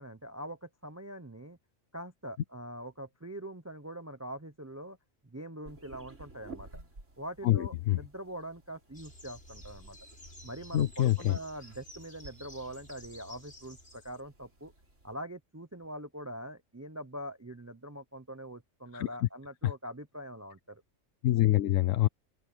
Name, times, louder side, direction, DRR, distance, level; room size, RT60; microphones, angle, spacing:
voice 1, 0.0-1.6 1.9-5.0 5.2-6.8 7.2-10.0 10.4-14.7 15.0-20.8, right 1 dB, 15° right, 0.7 m, -43 dB
sound 1, 5.6-15.2, right 3 dB, 75° right, 4.7 m, -54 dB
voice 2, 7.4-8.0 10.7-11.4 18.9-19.1 19.6-19.7 21.2-22.1, left 14 dB, 90° left, 1.0 m, -25 dB
sound 2, 8.9-14.2, left 1 dB, 60° left, 6.7 m, -52 dB
open air
omnidirectional pair, 1.3 m